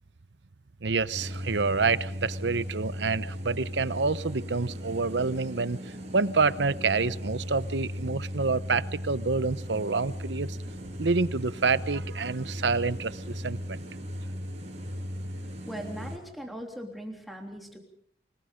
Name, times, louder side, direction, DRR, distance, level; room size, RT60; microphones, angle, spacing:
voice 1, 0.8-10.6 11.0-13.8, right 4 dB, 80° right, 15 dB, 0.9 m, -28 dB
sound 1, 1.1-16.2, equal, 40° right, 7.5 m, -37 dB
voice 2, 15.6-17.8, equal, ahead, 1 dB, 3.4 m, -39 dB
29.5 x 20.0 x 5.2 m, 0.66 s
head